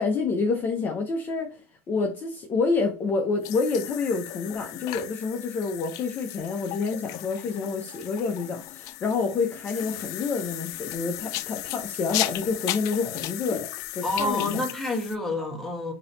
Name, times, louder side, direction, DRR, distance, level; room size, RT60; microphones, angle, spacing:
voice 1, 0.0-1.6 1.9-14.6, left 4 dB, 30° left, 0.7 m, -28 dB
sound 1, 3.4-15.2, left 15 dB, 55° left, 0.4 m, -35 dB
voice 2, 14.0-15.9, left 2 dB, 5° left, 1.3 m, -28 dB
3.9 x 2.9 x 3.9 m
supercardioid pair, 125°, 7 cm